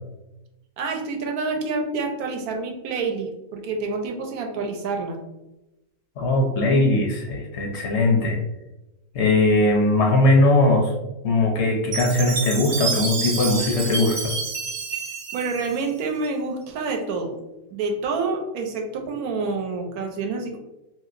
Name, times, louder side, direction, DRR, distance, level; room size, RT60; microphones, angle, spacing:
voice 1, 0.8-5.2 15.3-17.3 17.7-20.6, right 4 dB, 80° right, 4 dB, 1.1 m, -28 dB
voice 2, 6.2-8.4 9.1-10.9 11.2-14.3, left 2 dB, 65° left, 1 dB, 0.7 m, -20 dB
Chime, 11.9-16.3, right 5 dB, 55° right, 0.6 m, -29 dB
2.9 x 2.8 x 2.4 m, 0.97 s
omnidirectional pair, 1.6 m